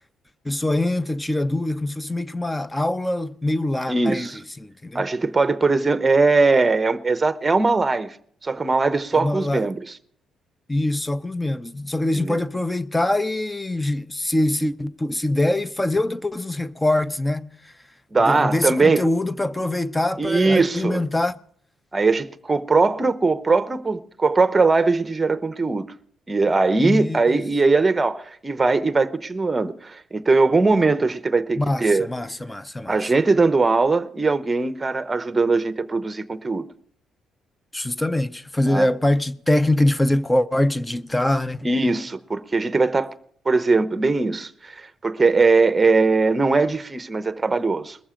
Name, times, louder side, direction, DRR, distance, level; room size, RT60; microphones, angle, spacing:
voice 1, 0.4-4.3 4.6-5.0 9.1-9.7 10.7-17.7 18.2-21.3 26.8-27.5 31.6-33.1 37.7-41.7, left 1 dB, 10° left, 0.6 m, -23 dB
voice 2, 3.9-4.4 4.9-8.2 8.4-9.8 12.1-12.4 18.1-19.1 20.2-21.0 21.9-25.9 26.3-32.1 32.9-36.6 38.7-38.9 41.6-43.1 43.4-48.0, right 3 dB, 25° right, 0.8 m, -20 dB
21.0 x 7.1 x 5.0 m
cardioid pair, 90°, 0 cm